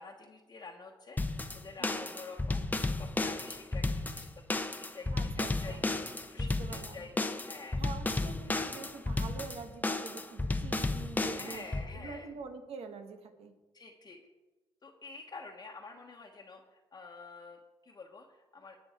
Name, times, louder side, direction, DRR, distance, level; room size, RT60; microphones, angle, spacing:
voice 1, 0.0-4.4 4.8-5.1 5.4-5.8 6.2-7.1 7.4-7.8 8.5-8.6 11.3-12.3 13.7-14.2 14.8-18.8, left 4 dB, 40° left, -1 dB, 1.2 m, -49 dB
sound 1, 1.2-11.9, left 2 dB, 15° left, 0.8 m, -33 dB
voice 2, 5.1-5.9 6.4-7.1 7.8-11.6 11.9-13.5, right 5 dB, 70° right, 6 dB, 1.5 m, -46 dB
18.5 x 6.3 x 4.4 m, 1.1 s
cardioid pair, 80°, 10 cm